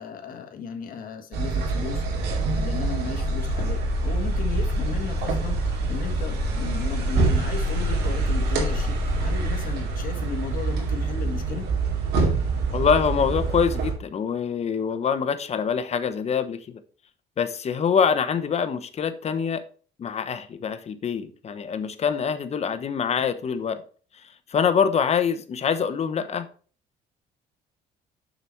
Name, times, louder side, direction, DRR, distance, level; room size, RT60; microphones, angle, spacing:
voice 1, 0.0-2.0 2.6-11.7, left 6 dB, 55° left, 1.7 m, -35 dB
sound 1, 1.3-13.9, right 2 dB, 75° right, 2.5 m, -25 dB
voice 2, 12.7-16.8 17.4-19.6 20.0-23.8 24.5-26.5, left 6 dB, 40° left, 1.0 m, -25 dB
6.8 x 5.9 x 4.5 m
cardioid pair, 110°, 17 cm